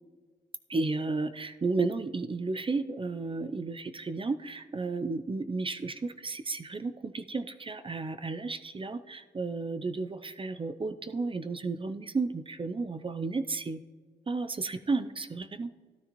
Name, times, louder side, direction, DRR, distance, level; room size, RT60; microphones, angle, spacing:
voice 1, 0.7-13.8 14.3-15.7, right 3 dB, 25° right, 10 dB, 0.5 m, -33 dB
14.0 x 12.5 x 3.0 m, 1.5 s
cardioid pair, 90°, 20 cm